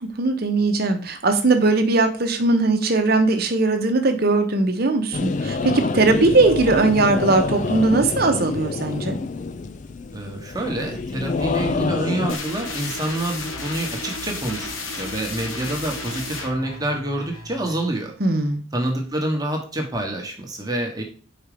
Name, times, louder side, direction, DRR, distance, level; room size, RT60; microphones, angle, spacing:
voice 1, 0.0-9.2 18.2-18.6, right 3 dB, 50° right, 6 dB, 0.9 m, -19 dB
sound 1, 5.1-12.4, left 4 dB, 40° left, 0.4 m, -27 dB
voice 2, 10.1-14.7 14.9-18.1 18.7-21.0, right 1 dB, 20° right, 1 dB, 1.1 m, -27 dB
sound 2, 12.3-17.9, left 2 dB, 80° left, 1.4 m, -33 dB
5.0 x 4.4 x 4.9 m, 0.40 s
head